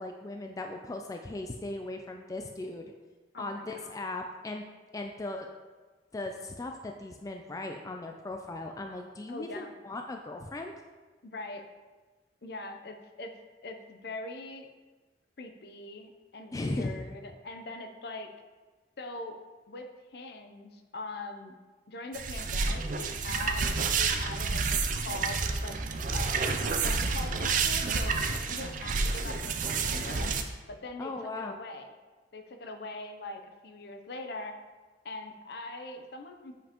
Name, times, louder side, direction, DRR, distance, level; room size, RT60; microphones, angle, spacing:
voice 1, 0.0-2.9 3.4-4.6 4.9-5.5 6.1-10.7 16.5-17.0 31.0-31.6, left 2 dB, 20° left, 3 dB, 0.3 m, -37 dB
voice 2, 3.3-4.0 9.3-9.7 11.2-11.6 12.4-13.3 13.6-14.7 15.4-18.3 19.0-19.4 19.7-21.5 21.9-25.8 26.1-26.4 26.8-28.2 28.5-30.3 30.7-31.9 32.3-34.6 35.0-36.5, left 2 dB, 60° left, 6 dB, 0.6 m, -42 dB
sound 1, 22.1-30.4, right 4 dB, 45° right, 0.5 m, -29 dB
7.6 x 5.2 x 3.0 m, 1.3 s
head